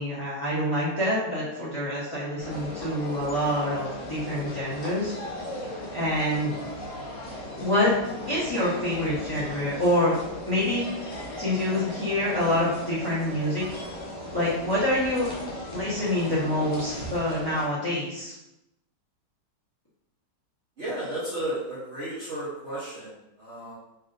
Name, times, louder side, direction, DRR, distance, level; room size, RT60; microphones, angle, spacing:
voice 1, 0.0-5.1 5.9-6.5 7.6-7.9 8.3-10.1 10.5-13.6 14.3-15.3 15.7-18.3, left 1 dB, 15° left, -11 dB, 0.8 m, -26 dB
sound 1, 2.4-17.7, left 1 dB, 60° left, 0.9 m, -37 dB
voice 2, 20.8-23.7, right 1 dB, 50° right, -9 dB, 0.9 m, -33 dB
3.3 x 2.7 x 2.5 m, 0.88 s
omnidirectional pair, 1.9 m